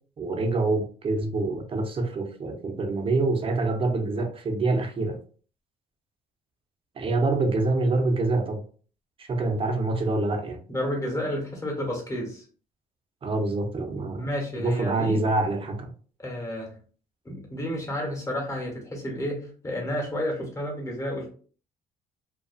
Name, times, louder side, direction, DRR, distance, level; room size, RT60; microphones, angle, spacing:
voice 1, 0.2-5.2 7.0-8.6 9.2-10.6 13.2-14.3 14.6-15.9, right 2 dB, 30° right, 0.6 m, -26 dB
voice 2, 10.7-12.4 14.2-15.2 16.2-16.8 17.2-21.3, equal, 20° left, 1.1 m, -31 dB
2.5 x 2.3 x 2.3 m
cardioid pair, 110°, 17 cm